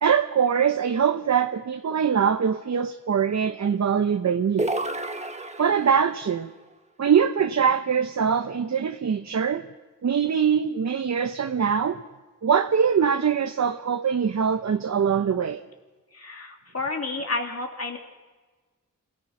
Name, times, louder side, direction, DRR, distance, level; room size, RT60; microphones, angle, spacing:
voice 1, 0.0-4.7 5.6-6.5 7.0-9.7 10.0-12.0 12.4-15.6, right 7 dB, 60° right, 8 dB, 0.8 m, -23 dB
sound 1, 4.6-6.1, right 2 dB, 20° right, 1.3 m, -30 dB
voice 2, 16.1-18.0, left 3 dB, 50° left, 3 dB, 2.8 m, -30 dB
27.0 x 17.0 x 5.9 m, 1.3 s
wide cardioid pair, 85°, 31 cm